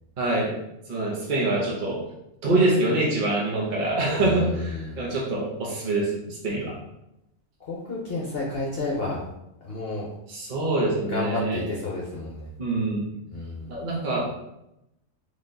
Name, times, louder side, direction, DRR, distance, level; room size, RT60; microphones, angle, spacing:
voice 1, 0.2-0.5 0.9-2.0 2.4-6.8 10.3-11.6 12.6-13.0 13.7-14.3, right 2 dB, 40° right, -4 dB, 1.0 m, -25 dB
voice 2, 4.2-5.0 7.6-9.2 9.6-10.1 11.0-12.5 13.3-13.7, left 2 dB, 50° left, -4 dB, 1.0 m, -31 dB
4.3 x 3.2 x 3.8 m, 0.85 s
omnidirectional pair, 1.5 m